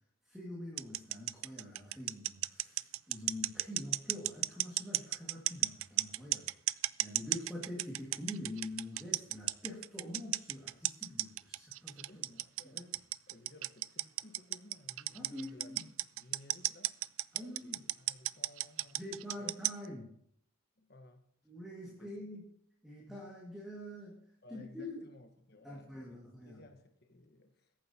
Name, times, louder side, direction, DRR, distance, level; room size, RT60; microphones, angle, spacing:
voice 1, 0.2-12.3 12.7-12.9 15.1-15.8 17.3-17.8 18.9-20.1 21.5-22.5 22.8-24.2 24.5-25.0 25.6-26.6, left 1 dB, ahead, 1.9 m, -45 dB
sound 1, 0.8-19.9, right 17 dB, 75° right, 0.3 m, -33 dB
voice 2, 12.1-13.0 13.3-17.0 17.4-19.0 19.4-19.5 20.8-21.3 22.0-22.1 23.1-23.3 24.4-27.7, left 2 dB, 50° left, 1.2 m, -57 dB
21.0 x 9.0 x 2.8 m
head